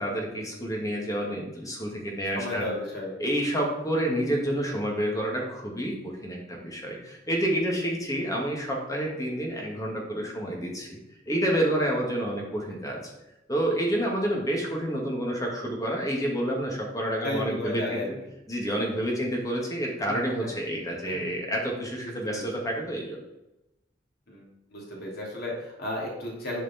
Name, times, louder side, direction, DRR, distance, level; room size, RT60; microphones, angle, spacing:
voice 1, 0.0-2.7 3.2-11.0 11.3-13.0 13.5-18.0 18.5-23.2, right 1 dB, 20° left, -1 dB, 2.2 m, -29 dB
voice 2, 2.2-3.2 12.7-12.8 14.0-14.1 17.2-18.1 20.1-20.2 20.4-20.5 21.0-21.3 22.0-22.6 24.3-24.4 24.7-26.6, left 1 dB, 60° left, -3 dB, 3.0 m, -34 dB
11.5 x 5.0 x 4.5 m, 0.91 s
head